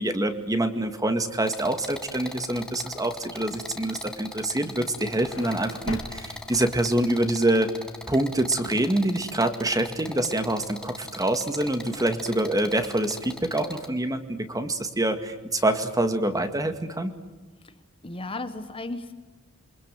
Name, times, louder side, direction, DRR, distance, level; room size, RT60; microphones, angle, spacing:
voice 1, 0.0-7.7 8.1-17.1, right 1 dB, 15° right, 8 dB, 2.0 m, -26 dB
sound 1, 1.4-13.9, left 1 dB, 5° left, 1.9 m, -40 dB
sound 2, 4.6-7.3, left 2 dB, 65° left, 2.7 m, -40 dB
voice 2, 18.0-19.1, left 2 dB, 25° left, 9 dB, 1.2 m, -34 dB
28.0 x 24.5 x 7.8 m, 1.2 s
head